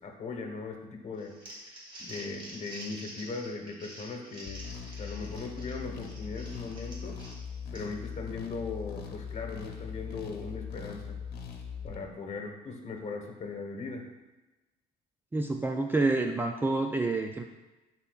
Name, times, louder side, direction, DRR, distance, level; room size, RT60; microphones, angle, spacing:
voice 1, 0.0-1.3 2.0-4.7 5.0-7.2 7.7-11.2 11.8-14.1, left 4 dB, 45° left, 3 dB, 1.2 m, -39 dB
Crumpling crinkling, 1.2-8.1, right 1 dB, 30° right, 2.2 m, -47 dB
sound 1, 4.5-12.0, left 6 dB, 70° left, 0.9 m, -40 dB
voice 2, 15.3-17.4, right 2 dB, 10° right, 3 dB, 0.4 m, -28 dB
11.0 x 4.3 x 2.4 m, 1.1 s
cardioid pair, 110°, 17 cm